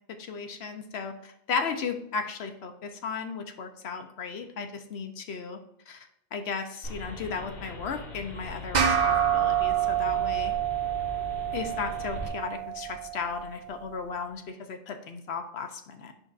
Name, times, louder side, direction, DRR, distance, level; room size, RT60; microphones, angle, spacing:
voice 1, 0.2-5.6 5.9-10.5 11.5-16.1, left 5 dB, 80° left, 7 dB, 1.0 m, -35 dB
sound 1, 6.8-12.3, left 2 dB, 60° left, 2.3 m, -40 dB
sound 2, 8.7-13.5, right 10 dB, 50° right, 0.8 m, -27 dB
8.0 x 5.9 x 2.5 m, 0.78 s
omnidirectional pair, 1.1 m